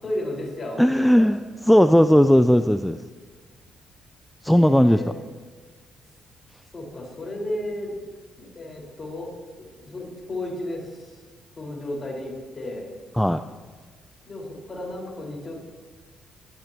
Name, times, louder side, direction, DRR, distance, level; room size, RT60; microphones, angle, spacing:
voice 1, 0.0-1.2 4.5-5.3 6.7-8.0 8.4-9.3 9.6-11.2 11.6-12.9 14.2-15.5, left 1 dB, 35° left, -1 dB, 5.0 m, -33 dB
voice 2, 0.8-1.4 1.7-3.0 4.4-5.0 13.2-13.4, equal, ahead, 9 dB, 0.4 m, -17 dB
20.0 x 13.0 x 3.0 m, 1.4 s
cardioid pair, 90°, 0 cm